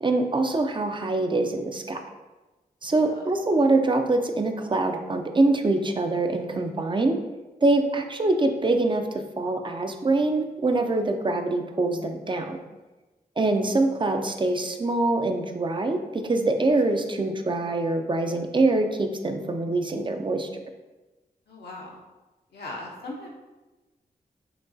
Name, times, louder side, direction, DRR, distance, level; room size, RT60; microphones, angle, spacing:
voice 1, 0.0-2.0 2.8-7.2 7.6-12.6 13.4-20.5, right 2 dB, 30° right, 5 dB, 0.4 m, -24 dB
voice 2, 21.5-22.0 22.5-23.3, left 2 dB, 85° left, -2 dB, 0.8 m, -39 dB
5.9 x 2.3 x 2.6 m, 1.1 s
cardioid pair, 50°, 16 cm